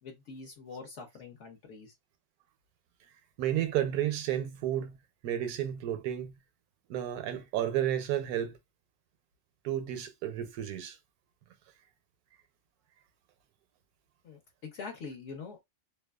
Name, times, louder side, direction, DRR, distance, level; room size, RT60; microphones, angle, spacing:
voice 1, 0.0-1.9 14.2-15.6, left 5 dB, 65° left, 0.8 m, -44 dB
voice 2, 3.4-5.0 5.2-6.3 6.9-8.6 9.6-11.0, right 11 dB, 85° right, 1.1 m, -32 dB
2.6 x 2.2 x 2.2 m
omnidirectional pair, 1.6 m